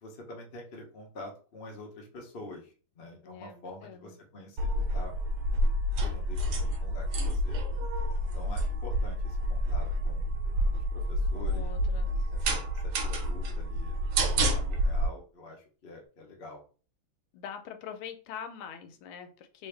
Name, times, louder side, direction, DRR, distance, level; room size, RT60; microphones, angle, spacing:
voice 1, 0.0-5.2 6.0-7.6 8.3-10.3 10.7-11.7 12.3-14.0 14.3-16.6, left 2 dB, 50° left, 0 dB, 0.6 m, -46 dB
voice 2, 3.2-4.2 11.3-12.1 17.3-19.7, left 8 dB, 85° left, 8 dB, 1.5 m, -43 dB
sound 1, 4.6-15.1, equal, 80° right, 1.5 m, -29 dB
3.4 x 2.7 x 3.3 m, 0.39 s
omnidirectional pair, 2.3 m